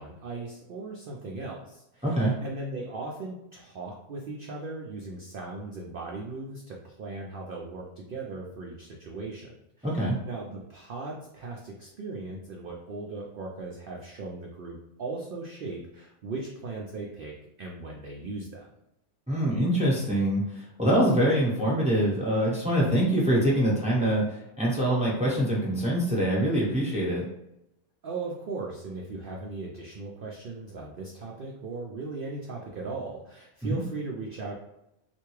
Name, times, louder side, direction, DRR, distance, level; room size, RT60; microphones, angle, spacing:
voice 1, 0.0-17.3 17.6-18.7 28.0-34.5, right 3 dB, 90° right, -1 dB, 0.4 m, -38 dB
voice 2, 2.0-2.3 9.8-10.2 19.3-27.3 33.7-33.8, right 1 dB, 5° right, -5 dB, 0.6 m, -24 dB
3.3 x 2.6 x 3.1 m, 0.87 s
omnidirectional pair, 1.5 m